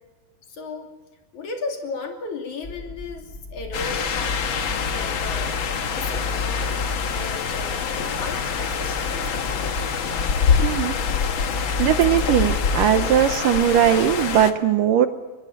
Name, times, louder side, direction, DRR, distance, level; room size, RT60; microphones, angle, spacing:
voice 1, 0.5-0.9 1.3-5.6 5.9-6.7 7.1-9.0, left 3 dB, 50° left, 3 dB, 4.0 m, -35 dB
sound 1, 2.6-13.3, left 3 dB, 20° left, 1.6 m, -32 dB
sound 2, 3.7-14.5, left 6 dB, 70° left, 1.2 m, -25 dB
voice 2, 10.6-11.0 11.8-15.1, right 10 dB, 70° right, 10 dB, 2.3 m, -19 dB
22.5 x 21.5 x 8.8 m, 1.2 s
omnidirectional pair, 4.4 m